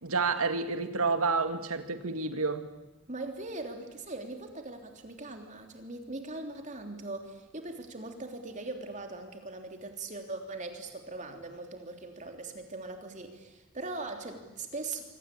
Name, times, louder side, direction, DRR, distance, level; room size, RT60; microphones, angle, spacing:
voice 1, 0.0-2.7, right 4 dB, 85° right, 9 dB, 2.1 m, -29 dB
voice 2, 3.1-15.1, right 2 dB, 35° right, 5 dB, 3.3 m, -40 dB
26.5 x 25.0 x 8.6 m, 1.1 s
head